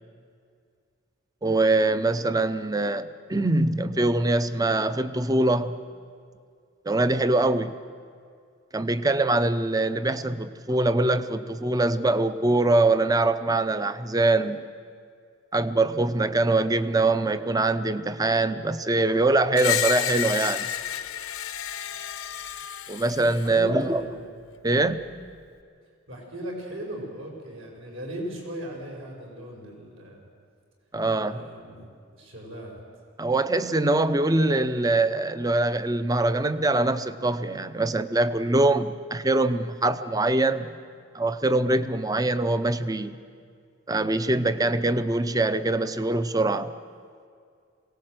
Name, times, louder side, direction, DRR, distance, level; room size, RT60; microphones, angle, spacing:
voice 1, 1.4-5.8 6.9-7.8 8.7-14.7 15.5-20.7 22.9-24.0 24.6-25.0 30.9-31.5 33.2-40.8 41.1-43.2 43.9-46.7, right 2 dB, 15° right, 12 dB, 0.6 m, -23 dB
Screech, 19.5-23.6, left 11 dB, 85° left, 0.9 m, -30 dB
voice 2, 23.4-24.1 26.1-30.2 31.2-31.9 32.1-32.7, right 1 dB, 75° right, -1 dB, 5.3 m, -37 dB
22.5 x 18.0 x 7.9 m, 2.2 s
head